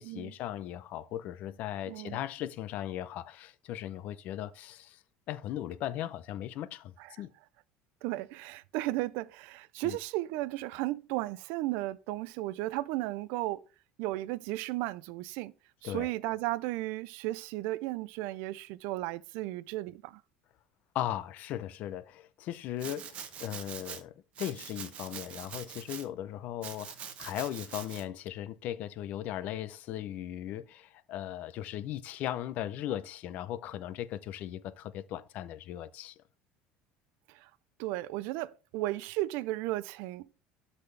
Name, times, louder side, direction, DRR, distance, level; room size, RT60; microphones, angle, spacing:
voice 1, 0.0-5.0 5.3-7.3 9.8-10.0 15.8-16.1 20.9-36.2, left 12 dB, 45° left, 0.6 m, -38 dB
voice 2, 1.9-2.2 7.0-7.2 8.0-13.7 14.0-15.5 15.8-20.2 37.3-37.5 37.8-40.5, right 17 dB, 65° right, 0.4 m, -35 dB
Domestic sounds home sounds, 22.8-24.0 24.3-26.1 26.6-28.0, right 8 dB, 35° right, 0.9 m, -44 dB
12.0 x 4.2 x 3.3 m
cardioid pair, 160°, 4 cm